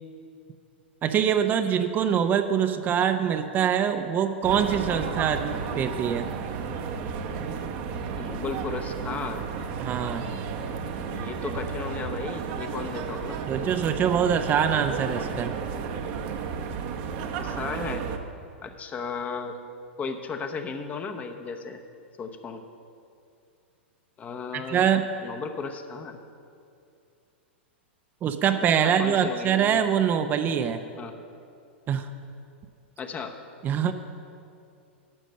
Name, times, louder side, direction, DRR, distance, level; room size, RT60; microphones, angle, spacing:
voice 1, 1.0-6.3 9.8-10.2 13.5-15.5 24.5-25.1 28.2-30.8 31.9-32.1 33.6-33.9, right 8 dB, 30° right, 8 dB, 0.5 m, -24 dB
sound 1, 4.4-18.2, right 6 dB, 50° right, 0.9 m, -33 dB
voice 2, 8.1-9.5 11.0-13.4 17.4-18.1 18.6-19.5 20.0-21.8 22.2-22.7 24.2-24.9 25.2-26.2 28.8-29.8 31.0-31.1 33.0-33.3, left 5 dB, 25° left, 6 dB, 0.8 m, -35 dB
12.0 x 6.5 x 6.5 m, 2.5 s
hypercardioid pair, 110°, 6 cm